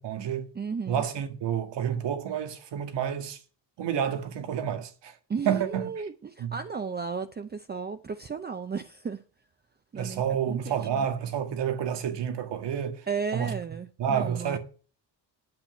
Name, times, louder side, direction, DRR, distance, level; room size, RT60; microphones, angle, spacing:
voice 1, 0.0-0.5 0.9-3.4 3.8-5.2 5.5-6.1 6.4-6.6 10.0-13.1 13.3-13.5 14.0-14.6, right 8 dB, 90° right, 2.0 m, -29 dB
voice 2, 0.6-1.0 5.3-9.2 9.9-10.2 10.5-11.0 13.1-14.6, right 5 dB, 25° right, 0.6 m, -34 dB
8.8 x 8.0 x 9.0 m
wide cardioid pair, 160°, 41 cm